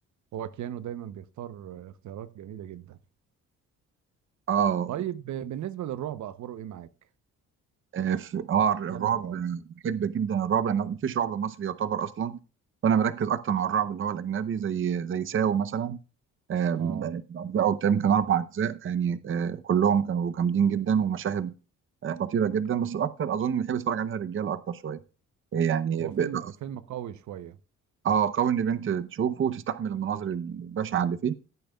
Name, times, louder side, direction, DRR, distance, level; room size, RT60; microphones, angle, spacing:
voice 1, 0.3-3.0 4.9-6.9 8.9-9.4 16.8-17.1 26.0-27.6, right 11 dB, 70° right, 0.8 m, -37 dB
voice 2, 4.5-4.9 7.9-12.4 12.8-16.0 16.5-21.5 22.0-25.0 25.5-26.5 28.0-31.3, right 8 dB, 45° right, 0.7 m, -27 dB
16.0 x 8.8 x 2.3 m
cardioid pair, 90°, 30 cm